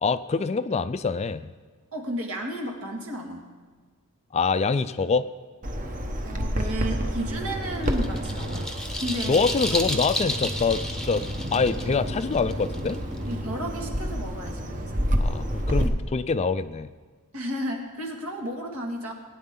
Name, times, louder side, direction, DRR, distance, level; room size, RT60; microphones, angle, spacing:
voice 1, 0.0-1.5 4.3-5.3 9.3-11.2 11.5-13.0 15.2-16.9, left 4 dB, 30° left, 13 dB, 0.3 m, -25 dB
voice 2, 1.9-3.5 6.2-8.7 9.0-10.0 13.2-15.1 17.3-19.1, right 1 dB, 70° right, 1 dB, 2.1 m, -33 dB
Bird vocalization bird call bird song, 5.6-15.9, equal, 35° right, 1.0 m, -29 dB
sound 1, 7.5-13.3, left 1 dB, 5° left, 0.8 m, -32 dB
20.5 x 9.8 x 3.8 m, 1.5 s
head